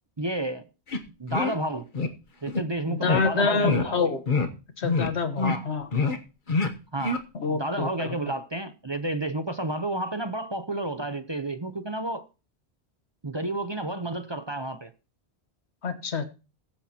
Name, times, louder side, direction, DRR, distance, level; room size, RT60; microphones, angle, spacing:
voice 1, 0.2-0.6 1.2-1.9 2.4-4.0 5.4-5.7 6.9-7.2 7.5-12.2 13.2-14.9, right 1 dB, 30° right, 0.7 m, -31 dB
sound 1, 0.9-1.0 1.3-1.6 1.9-2.1 2.5-2.6 3.1-3.2 3.6-3.9 4.3-4.5 4.8-5.1 5.4-5.6 5.9-6.2 6.5-6.7 7.0-7.2, left 4 dB, 50° left, 1.2 m, -25 dB
voice 2, 2.9-4.2 4.8-5.9 7.3-8.1 15.8-16.2, left 4 dB, 80° left, 1.6 m, -27 dB
21.0 x 8.6 x 2.9 m
omnidirectional pair, 1.1 m